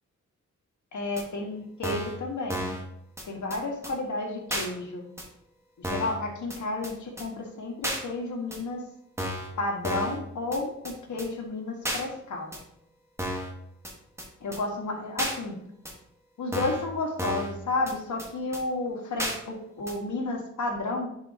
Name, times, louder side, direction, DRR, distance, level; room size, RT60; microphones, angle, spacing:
voice 1, 0.9-2.7 3.2-5.0 5.8-8.8 9.6-12.5 14.4-15.6 16.4-21.1, left 2 dB, 75° left, 0 dB, 1.6 m, -32 dB
sound 1, 1.2-1.3 1.8-2.2 2.5-2.8 3.2-3.3 3.5-3.6 3.8-3.9 4.5-4.7 5.2-5.3 5.8-6.2 6.5-6.6 6.8-6.9 7.2-7.3 7.8-8.0 8.5-8.6 9.2-9.5 9.8-10.2 10.5-10.6 10.8-10.9 11.2-11.3 11.8-12.0 12.5-12.6 13.2-13.5 13.8-13.9 14.2-14.3 14.5-14.6 15.2-15.3 15.8-15.9 16.5-16.8 17.2-17.5 17.9-18.0 18.2-18.3 18.5-18.6 19.2-19.4 19.9-20.0, equal, 10° right, 1.4 m, -32 dB
9.8 x 4.2 x 2.9 m, 0.76 s
wide cardioid pair, 105°, 30 cm